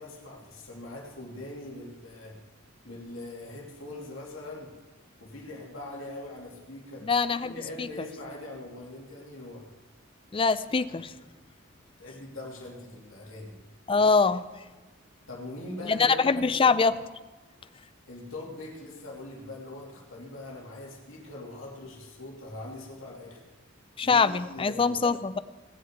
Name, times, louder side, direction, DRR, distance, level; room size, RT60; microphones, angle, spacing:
voice 1, 0.0-2.4 2.8-4.7 5.2-7.1 7.4-9.7 12.0-13.6 15.3-16.4 18.1-23.4 24.0-25.0, left 2 dB, 75° left, -1 dB, 2.8 m, -42 dB
voice 2, 7.0-7.9 10.3-11.1 13.9-14.4 15.9-17.0 24.0-25.4, left 4 dB, 25° left, 15 dB, 0.4 m, -24 dB
18.5 x 6.7 x 8.0 m, 1.2 s
head